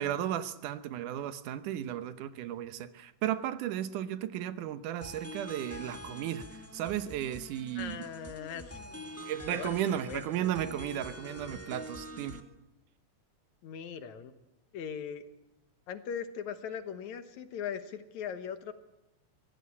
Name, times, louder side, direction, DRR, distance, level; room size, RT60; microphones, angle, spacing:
voice 1, 0.0-8.1 9.2-12.4, right 11 dB, 85° right, 2.5 m, -34 dB
sound 1, 5.0-12.4, left 1 dB, 10° left, 0.7 m, -45 dB
voice 2, 7.8-9.1 9.5-9.7 10.1-10.5 13.6-14.3 14.7-15.3 15.9-18.7, left 7 dB, 70° left, 2.5 m, -40 dB
24.5 x 17.0 x 8.5 m
omnidirectional pair, 3.5 m